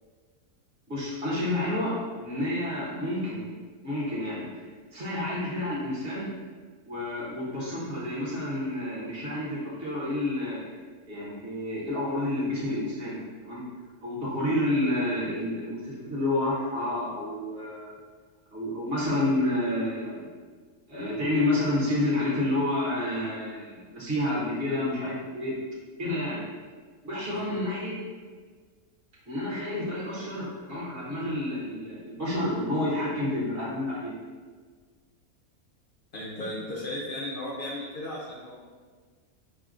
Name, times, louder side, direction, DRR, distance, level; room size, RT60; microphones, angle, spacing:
voice 1, 0.9-3.5 3.8-6.3 6.8-10.6 11.1-13.6 14.0-18.0 18.5-20.3 20.9-25.6 26.0-26.4 27.0-28.0 29.3-34.1, left 1 dB, 45° right, -6 dB, 1.2 m, -29 dB
voice 2, 36.1-38.5, left 1 dB, 55° left, -5 dB, 0.6 m, -35 dB
5.9 x 2.2 x 2.5 m, 1.5 s
omnidirectional pair, 1.5 m